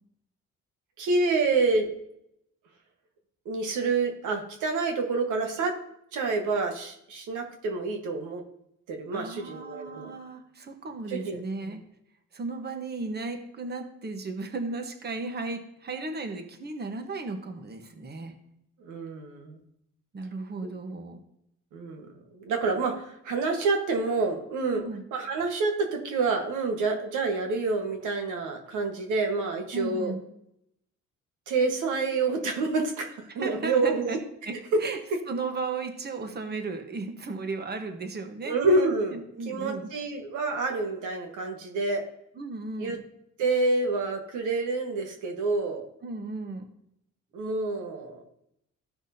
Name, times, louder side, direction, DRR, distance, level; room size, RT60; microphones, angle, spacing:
voice 1, 1.0-1.9 3.4-5.8 6.1-8.4 8.9-10.1 11.1-11.4 18.8-19.6 21.7-22.0 22.3-24.8 25.1-30.1 31.5-34.2 34.7-34.8 35.1-35.2 38.4-39.2 39.5-42.0 42.8-43.0 43.4-45.9 47.3-48.2, right 3 dB, 85° right, 4 dB, 1.4 m, -27 dB
voice 2, 9.1-11.8 12.3-18.4 20.1-21.2 24.7-25.0 29.7-30.2 33.3-34.2 34.4-35.0 35.3-38.6 39.1-39.9 42.4-43.0 46.0-46.6, right 3 dB, 35° right, 6 dB, 1.2 m, -35 dB
14.0 x 6.0 x 2.8 m, 0.77 s
cardioid pair, 90°, 30 cm